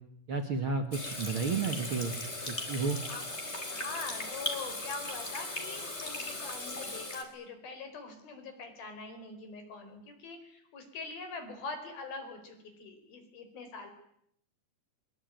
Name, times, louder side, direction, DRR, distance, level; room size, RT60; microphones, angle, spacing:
voice 1, 0.3-2.2 2.5-3.0, right 4 dB, 45° right, 7 dB, 1.9 m, -32 dB
Water tap faucet / Sink (filling or washing), 0.9-7.2, left 2 dB, 15° left, 4.3 m, -38 dB
voice 2, 3.7-13.9, left 4 dB, 70° left, 7 dB, 6.4 m, -43 dB
24.5 x 23.5 x 9.3 m, 0.71 s
omnidirectional pair, 4.3 m